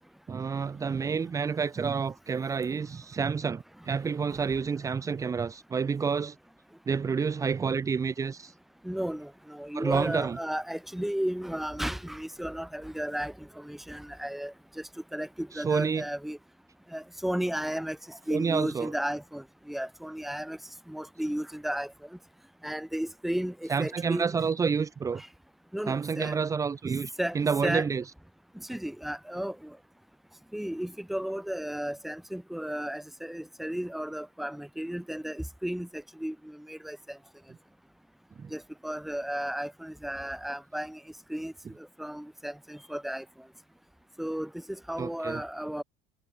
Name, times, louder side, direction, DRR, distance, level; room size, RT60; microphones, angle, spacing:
voice 1, 0.3-6.4 6.9-8.5 9.7-10.4 15.5-16.0 18.3-18.9 23.7-25.2 25.9-28.0 38.4-38.5 45.0-45.4, right 5 dB, 20° right, 2.6 m, -29 dB
voice 2, 8.8-14.8 15.1-16.4 16.9-20.6 20.9-21.9 22.6-24.3 25.2-25.3 25.7-26.4 27.2-27.9 28.5-29.8 30.5-37.2 38.5-41.0 41.3-43.2 44.2-45.8, equal, ahead, 3.2 m, -34 dB
cardioid pair, 150°, 17 cm